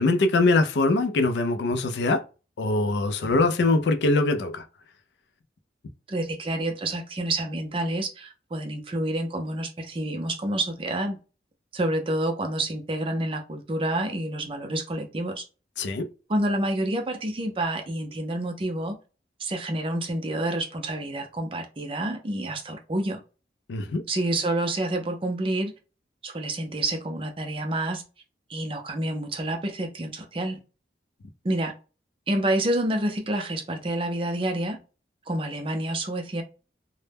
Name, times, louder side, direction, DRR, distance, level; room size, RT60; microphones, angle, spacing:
voice 1, 0.0-2.2 2.6-4.6 15.8-16.1 23.7-24.0, left 2 dB, 75° left, 0.4 m, -22 dB
voice 2, 6.1-11.2 11.7-15.4 16.3-19.0 19.4-23.2 24.1-25.7 26.2-28.0 28.5-30.6 31.4-31.7 32.3-34.8 35.3-36.4, right 1 dB, 30° right, 0.4 m, -28 dB
2.1 x 2.0 x 3.2 m
head